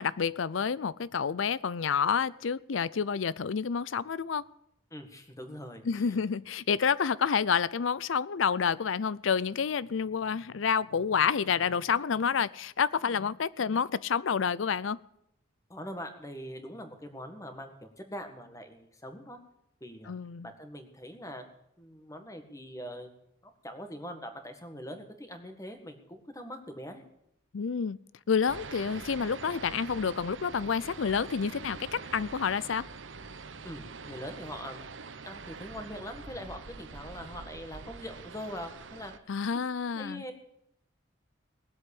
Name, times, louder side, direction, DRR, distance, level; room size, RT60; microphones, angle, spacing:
voice 1, 0.0-4.4 5.8-15.0 20.1-20.5 27.5-28.0 28.3-32.9 39.3-40.2, left 6 dB, 85° left, 0.5 m, -29 dB
voice 2, 4.9-6.2 15.7-19.4 19.8-20.1 20.4-21.4 21.8-27.0 33.6-35.0 35.3-39.1 39.5-39.6 40.0-40.3, equal, 15° left, 1.8 m, -43 dB
sound 1, 28.5-39.2, right 4 dB, 80° right, 1.0 m, -44 dB
19.0 x 8.0 x 8.6 m
head